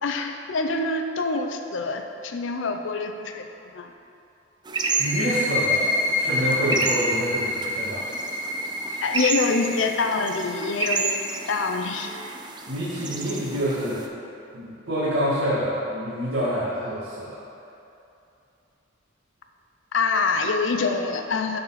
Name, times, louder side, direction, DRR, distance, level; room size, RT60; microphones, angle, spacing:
voice 1, 0.0-3.5 3.7-3.9 9.0-12.2 19.9-21.6, left 4 dB, 70° left, 5 dB, 0.6 m, -25 dB
sound 1, 4.6-14.1, right 4 dB, 20° right, 0.4 m, -31 dB
sound 2, 4.8-12.3, left 2 dB, 20° left, 1.8 m, -28 dB
voice 2, 5.0-8.0 12.7-14.1 14.5-17.4, equal, 65° right, -12 dB, 1.8 m, -27 dB
12.0 x 4.2 x 4.2 m, 2.7 s
head